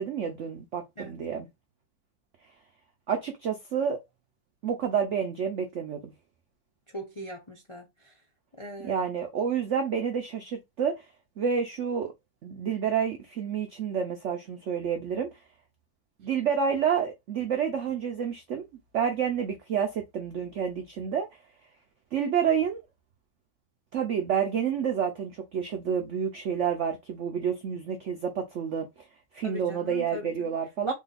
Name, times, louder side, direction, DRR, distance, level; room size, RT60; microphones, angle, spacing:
voice 1, 0.0-1.5 3.1-4.0 4.6-6.1 8.8-11.0 11.4-12.1 12.4-15.3 16.2-18.6 18.9-21.3 22.1-22.8 23.9-28.9 29.3-30.9, right 7 dB, 80° right, 0.6 m, -29 dB
voice 2, 6.9-8.1 8.6-8.9 29.4-30.5 30.9-31.0, left 1 dB, 50° left, 0.3 m, -39 dB
3.7 x 2.5 x 3.9 m
omnidirectional pair, 2.0 m